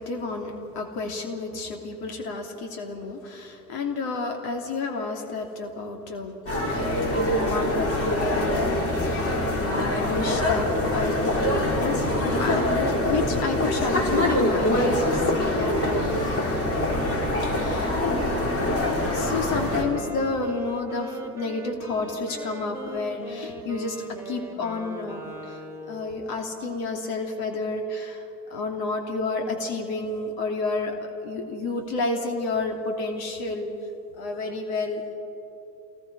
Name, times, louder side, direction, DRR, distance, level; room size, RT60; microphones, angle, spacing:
voice 1, 0.0-6.4 6.7-16.2 17.4-18.0 19.1-25.6 25.9-28.2 28.5-31.0 31.2-33.7 34.2-35.1, left 3 dB, 55° left, 3 dB, 3.0 m, -30 dB
sound 1, 6.5-19.8, left 1 dB, 30° left, 5.5 m, -24 dB
Wind instrument woodwind instrument, 18.5-26.4, right 2 dB, 5° right, 3.2 m, -40 dB
28.0 x 19.5 x 4.9 m, 2.9 s
hypercardioid pair, 70°, 45 cm